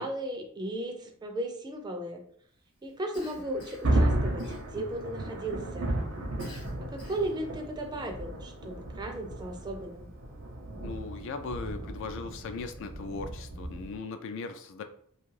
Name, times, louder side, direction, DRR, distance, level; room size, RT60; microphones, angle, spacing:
voice 1, 0.0-2.2 2.8-6.0 6.8-10.1, right 1 dB, 20° right, 4 dB, 0.4 m, -36 dB
Cough, 3.1-4.0 4.4-5.0 6.4-7.4, left 2 dB, 45° left, 1.0 m, -50 dB
Thunder, 3.2-14.0, right 1 dB, 65° right, 0.6 m, -33 dB
voice 2, 10.8-14.8, left 4 dB, 60° left, 8 dB, 0.3 m, -38 dB
2.4 x 2.3 x 3.1 m, 0.62 s
head